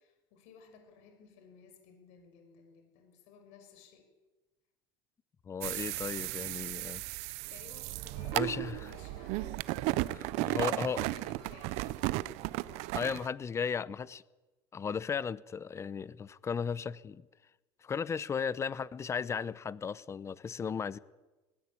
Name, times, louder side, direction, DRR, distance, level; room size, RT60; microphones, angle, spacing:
voice 1, 0.0-4.0 7.5-12.0, left 6 dB, 70° left, 6.1 m, -56 dB
voice 2, 5.5-7.0 8.3-8.9 10.5-11.0 12.9-14.2 14.7-17.2 17.8-21.0, left 6 dB, 25° left, 0.8 m, -35 dB
sound 1, 5.6-13.3, right 19 dB, 65° right, 0.8 m, -35 dB
20.0 x 18.0 x 8.5 m
supercardioid pair, 125°, 12 cm